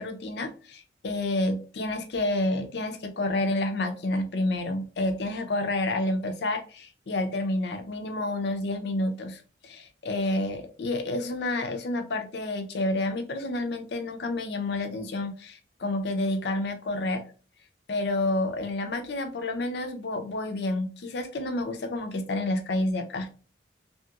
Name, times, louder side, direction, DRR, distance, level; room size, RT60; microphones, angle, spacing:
voice 1, 0.0-17.2 17.9-23.3, left 2 dB, 65° left, 7 dB, 0.5 m, -29 dB
2.9 x 2.8 x 2.3 m, 0.38 s
head